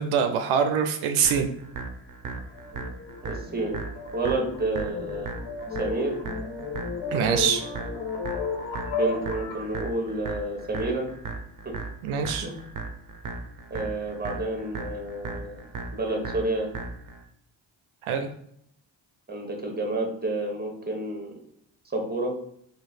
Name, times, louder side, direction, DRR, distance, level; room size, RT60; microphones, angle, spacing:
voice 1, 0.0-1.5 7.1-7.6 12.0-12.5 18.0-18.3, right 7 dB, 80° right, 7 dB, 0.5 m, -24 dB
sound 1, 1.2-17.2, right 4 dB, 40° right, 0.7 m, -37 dB
sound 2, 2.4-9.7, left 4 dB, 65° left, 1.5 m, -34 dB
voice 2, 3.2-3.8 4.1-5.3 5.8-6.1 8.9-11.1 11.6-11.7 12.4-12.6 13.7-15.6 15.9-16.7 19.3-21.3 21.9-22.3, right 2 dB, 20° right, 2 dB, 1.2 m, -29 dB
3.1 x 2.7 x 4.1 m, 0.71 s
supercardioid pair, 60°, 49 cm